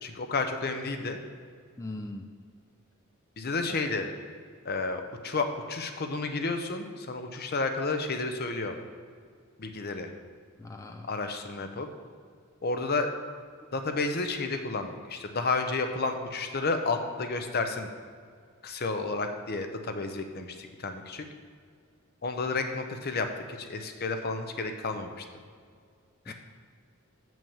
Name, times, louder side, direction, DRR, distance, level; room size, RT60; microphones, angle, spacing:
voice 1, 0.0-1.2 3.4-4.1 4.6-8.7 9.6-10.1 11.1-11.9 12.6-13.1 13.7-17.9 18.6-21.2 22.2-25.2 26.3-26.4, left 3 dB, 50° left, 6 dB, 0.7 m, -31 dB
voice 2, 1.8-2.3 10.6-11.1 26.3-26.4, left 2 dB, 15° left, 4 dB, 0.4 m, -39 dB
6.8 x 6.2 x 7.1 m, 2.1 s
head